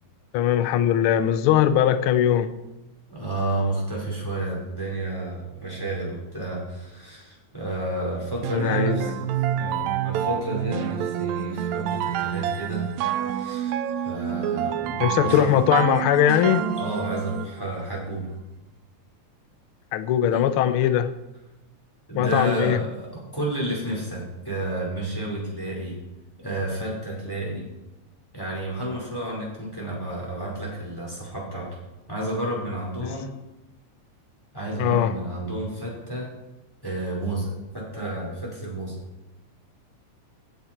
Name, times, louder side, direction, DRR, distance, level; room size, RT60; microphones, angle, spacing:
voice 1, 0.3-2.5 8.5-9.1 15.0-16.7 19.9-21.1 22.1-22.8 33.0-33.2 34.8-35.1, left 10 dB, 80° left, 12 dB, 1.2 m, -21 dB
voice 2, 3.1-12.8 13.3-15.5 16.8-18.4 20.3-20.5 22.1-26.0 26.4-27.6 28.3-31.7 32.1-33.3 34.5-36.3 36.8-39.0, right 1 dB, 5° left, -4 dB, 4.6 m, -31 dB
sound 1, 8.4-17.6, right 10 dB, 80° right, 1.9 m, -28 dB
15.5 x 11.0 x 4.5 m, 0.98 s
omnidirectional pair, 3.4 m